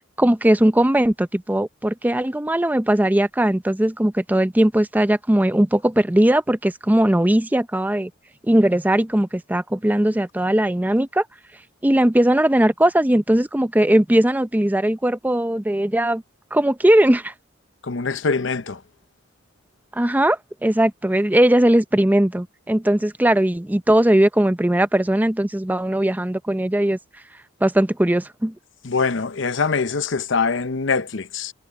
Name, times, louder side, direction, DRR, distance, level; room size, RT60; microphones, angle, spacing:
voice 1, 0.2-8.1 8.5-11.3 11.8-16.2 16.5-17.3 19.9-27.0 27.6-28.5, right 1 dB, 10° right, 0.5 m, -19 dB
voice 2, 17.9-18.8 28.8-31.5, left 4 dB, 70° left, 0.8 m, -23 dB
head